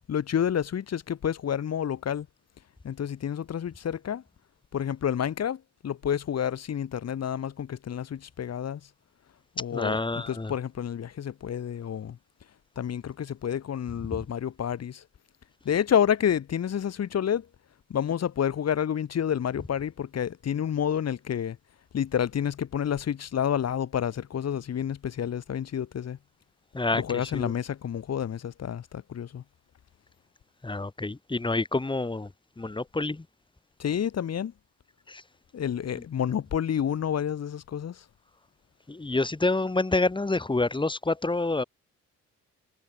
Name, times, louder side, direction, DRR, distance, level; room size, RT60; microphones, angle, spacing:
voice 1, 0.1-2.3 2.8-4.2 4.7-8.8 9.6-12.2 12.8-15.0 15.6-17.5 17.9-21.6 21.9-26.2 26.9-29.4 33.8-34.5 35.5-38.0, left 9 dB, 55° left, 4.1 m, -29 dB
voice 2, 9.7-10.5 26.7-27.5 30.6-32.3 32.6-33.2 35.1-35.2 38.9-41.6, left 2 dB, 15° left, 3.1 m, -28 dB
cardioid pair, 90°, 30 cm